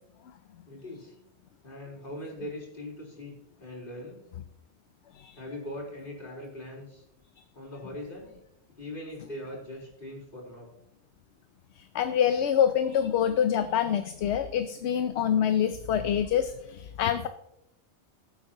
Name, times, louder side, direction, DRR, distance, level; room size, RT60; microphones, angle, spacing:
voice 1, 0.6-1.1 1.6-3.3 3.6-4.2 5.3-7.0 7.5-8.3 8.8-10.7, left 1 dB, 50° left, -5 dB, 4.2 m, -41 dB
voice 2, 11.9-17.3, left 9 dB, 70° left, 10 dB, 0.9 m, -26 dB
17.5 x 8.3 x 2.9 m, 0.81 s
omnidirectional pair, 1.2 m